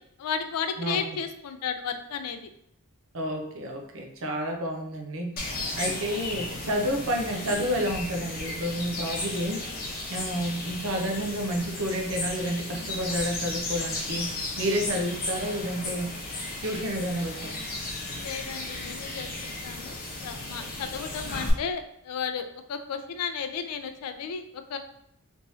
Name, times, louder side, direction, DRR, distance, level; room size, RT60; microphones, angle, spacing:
voice 1, 0.2-2.5 5.9-6.0 18.2-24.4 24.7-24.8, left 6 dB, 85° left, 8 dB, 0.4 m, -34 dB
voice 2, 3.1-9.6 10.1-16.1 16.6-17.6, equal, 60° right, 2 dB, 0.7 m, -30 dB
sound 1, 5.4-21.5, left 2 dB, 40° left, 0.8 m, -35 dB
3.5 x 3.0 x 2.7 m, 0.75 s
head